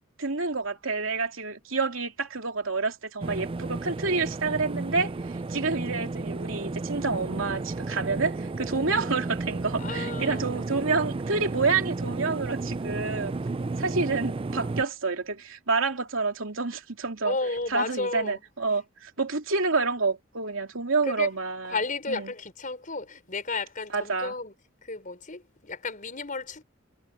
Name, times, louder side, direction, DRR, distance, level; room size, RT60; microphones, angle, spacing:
voice 1, 0.2-13.4 13.8-17.4 17.7-21.8 22.1-22.3 23.9-24.3, right 4 dB, 75° right, 2.9 m, -28 dB
sound 1, 3.2-14.8, right 3 dB, 25° right, 0.4 m, -33 dB
voice 2, 9.8-10.5 17.2-18.4 21.1-21.3 21.7-24.5 24.8-26.6, left 3 dB, 40° left, 5.1 m, -33 dB
head